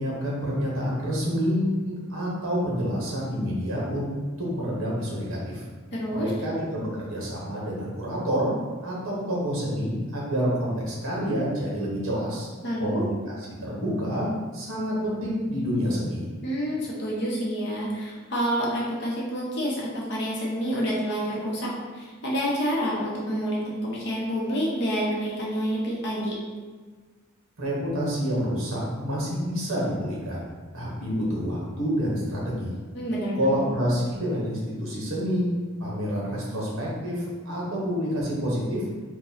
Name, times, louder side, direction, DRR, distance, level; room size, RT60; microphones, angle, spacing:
voice 1, 0.0-4.1 4.4-5.7 6.0-8.5 8.8-12.5 12.8-14.3 14.5-16.3 27.6-32.7 33.3-38.8, equal, 65° right, -5 dB, 1.0 m, -28 dB
voice 2, 5.9-6.3 12.6-13.0 16.4-26.4 32.9-33.6, equal, 50° left, -5 dB, 0.8 m, -28 dB
2.9 x 2.2 x 4.0 m, 1.4 s
head